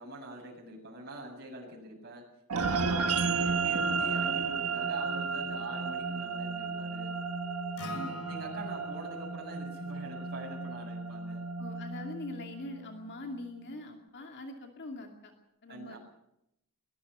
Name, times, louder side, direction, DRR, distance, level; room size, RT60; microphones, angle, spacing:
voice 1, 0.0-2.2 2.6-7.1 8.3-11.4 15.7-16.0, right 2 dB, 45° right, -1 dB, 7.7 m, -44 dB
sound 1, 2.5-13.1, right 4 dB, 80° right, 1.5 m, -33 dB
voice 2, 2.9-3.2 7.9-8.3 11.6-15.3 15.6-16.0, left 1 dB, 50° left, 3 dB, 2.6 m, -43 dB
Acoustic guitar, 7.8-12.0, left 2 dB, 75° left, 3.5 m, -47 dB
22.5 x 21.0 x 5.6 m, 0.80 s
head